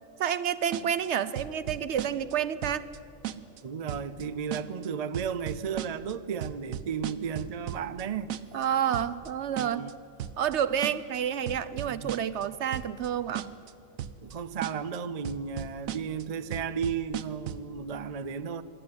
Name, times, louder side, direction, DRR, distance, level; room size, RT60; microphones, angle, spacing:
voice 1, 0.2-2.8 8.5-9.9 10.4-13.5, right 9 dB, 65° right, 0.9 m, -29 dB
sound 1, 0.7-1.1 1.4-2.3 2.6-3.0 3.2-3.6 3.9-4.2 4.5-4.9 5.1-6.1 6.4-8.0 8.3-8.7 8.9-9.3 9.6-9.9 10.2-10.6 10.8-11.2 11.5-12.4 12.7-13.1 13.4-13.7 14.0-14.3 14.6-15.0 15.2-16.2 16.5-17.7, right 10 dB, 80° right, 1.1 m, -36 dB
voice 2, 3.6-8.3 9.6-9.9 11.9-12.1 14.2-18.6, right 7 dB, 45° right, 0.5 m, -34 dB
25.5 x 11.5 x 9.6 m
omnidirectional pair, 1.4 m